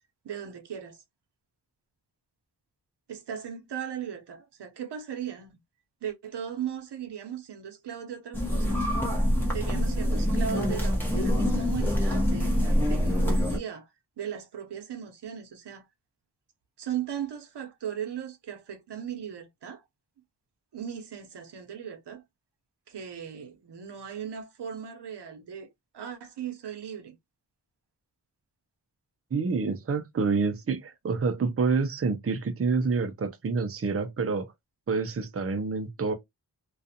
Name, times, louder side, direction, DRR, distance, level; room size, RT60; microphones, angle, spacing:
voice 1, 0.2-1.0 3.1-5.6 6.0-8.9 9.5-13.9 14.2-15.9 16.8-19.8 20.7-22.2 22.9-25.7 25.9-27.2, right 8 dB, 85° right, 0.7 m, -37 dB
sound 1, 8.3-13.6, equal, 5° left, 0.9 m, -25 dB
voice 2, 29.3-34.5 34.9-36.1, right 4 dB, 35° right, 0.5 m, -27 dB
2.4 x 2.3 x 2.7 m
wide cardioid pair, 85°, 40 cm